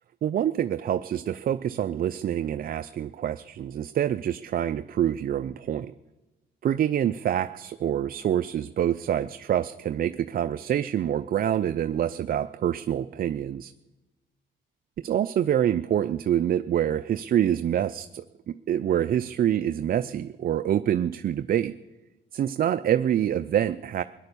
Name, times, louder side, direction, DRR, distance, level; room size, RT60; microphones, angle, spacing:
voice 1, 0.2-5.9 6.6-13.7 15.0-21.7 22.3-24.0, right 10 dB, 45° right, 11 dB, 0.4 m, -26 dB
18.0 x 10.5 x 6.9 m, 1.1 s
cardioid pair, 90°, 20 cm